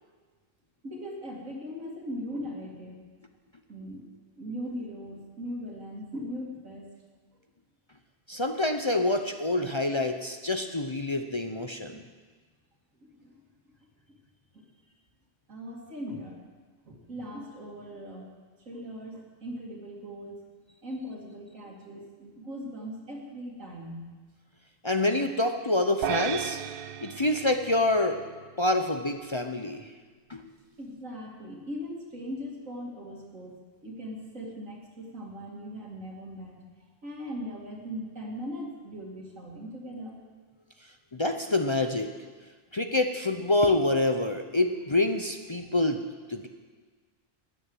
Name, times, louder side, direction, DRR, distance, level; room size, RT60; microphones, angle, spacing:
voice 1, 0.8-3.0 3.7-4.0 4.4-6.9 13.0-13.4 14.5-14.6 15.5-16.4 16.9-18.3 18.7-20.4 20.8-24.1 30.8-33.6 33.8-36.6 37.0-40.2, equal, 85° right, -2 dB, 2.6 m, -39 dB
voice 2, 8.3-12.0 24.8-26.6 27.0-28.2 28.6-29.9 30.3-30.5 41.1-42.1 42.7-46.0 46.3-46.5, left 2 dB, 30° left, 6 dB, 0.6 m, -26 dB
sound 1, 26.0-28.5, right 9 dB, 60° right, 0.6 m, -34 dB
14.0 x 9.6 x 7.7 m, 1.4 s
omnidirectional pair, 1.3 m